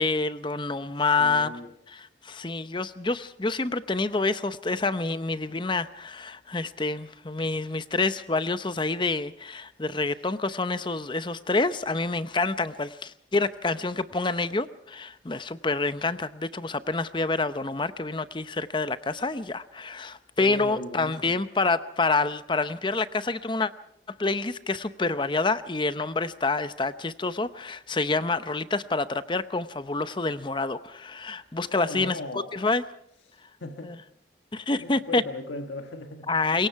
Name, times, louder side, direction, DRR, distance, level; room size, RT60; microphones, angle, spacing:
voice 1, 0.0-1.5 1.9-23.7 24.2-32.2 32.5-32.8 33.8-34.0 34.5-35.2 36.3-36.7, left 3 dB, 25° left, 13 dB, 0.8 m, -27 dB
voice 2, 0.9-1.7 20.4-21.4 31.6-32.6 33.2-34.0 34.8-36.6, left 2 dB, 85° left, 5 dB, 1.5 m, -39 dB
25.5 x 22.5 x 4.7 m, 0.71 s
head